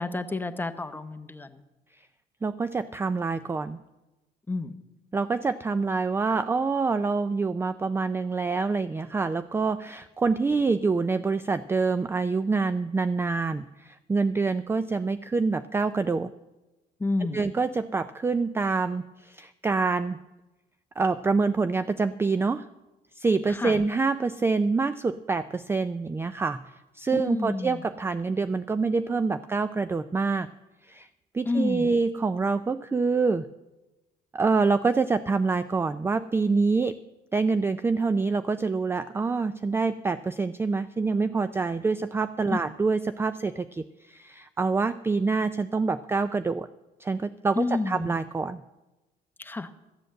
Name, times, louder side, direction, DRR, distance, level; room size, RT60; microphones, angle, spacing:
voice 1, 0.0-1.6 4.5-4.7 17.0-17.4 23.5-23.8 27.1-27.8 31.4-31.9 42.5-42.6 47.6-48.1 49.4-49.7, left 3 dB, 10° left, 9 dB, 0.9 m, -30 dB
voice 2, 2.4-3.8 5.1-16.3 17.3-20.2 21.0-22.7 23.2-26.6 27.0-30.5 30.8-31.1 31.3-33.5 34.3-37.0 37.3-46.7 47.0-48.6, right 4 dB, 15° right, 13 dB, 0.3 m, -26 dB
13.5 x 7.8 x 7.6 m, 1.1 s
cardioid pair, 110°, 17 cm